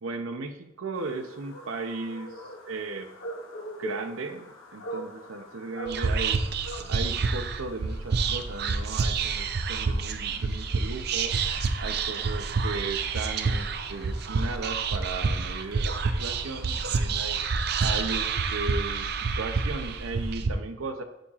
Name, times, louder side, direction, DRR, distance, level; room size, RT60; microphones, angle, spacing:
voice 1, 0.0-2.3 2.7-3.1 3.8-6.4 6.9-11.3 11.8-17.4 17.8-19.1 19.4-21.0, right 3 dB, 90° right, 7 dB, 0.7 m, -36 dB
sound 1, 0.9-20.3, right 1 dB, 80° left, 1.1 m, -45 dB
Whispering, 5.9-20.5, right 4 dB, 50° right, 0.5 m, -28 dB
11.5 x 5.5 x 2.4 m, 0.90 s
head